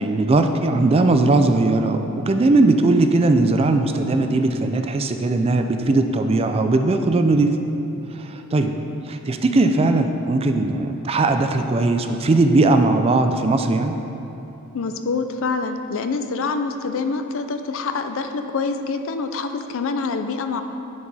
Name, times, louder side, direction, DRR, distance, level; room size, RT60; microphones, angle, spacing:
voice 1, 0.0-7.6 8.1-8.7 9.1-14.0, right 2 dB, 25° right, 6 dB, 0.3 m, -19 dB
voice 2, 14.7-20.6, left 4 dB, 60° left, 7 dB, 0.5 m, -26 dB
10.5 x 4.8 x 4.1 m, 2.9 s
head